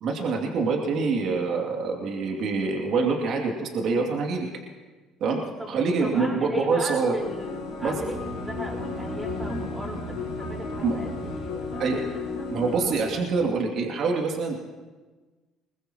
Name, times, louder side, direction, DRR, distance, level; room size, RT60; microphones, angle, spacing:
voice 1, 0.0-4.5 5.2-5.4 5.7-7.1 7.8-8.1 10.8-11.0 11.8-12.0 12.5-14.6, right 4 dB, 60° right, 1 dB, 2.6 m, -25 dB
voice 2, 5.6-12.5, equal, 10° right, -2 dB, 4.7 m, -38 dB
sound 1, 7.2-13.0, left 4 dB, 90° left, 3.8 m, -34 dB
sound 2, 7.8-13.5, right 4 dB, 75° right, 2.1 m, -41 dB
22.0 x 20.5 x 3.0 m, 1.3 s
supercardioid pair, 70°, 0 cm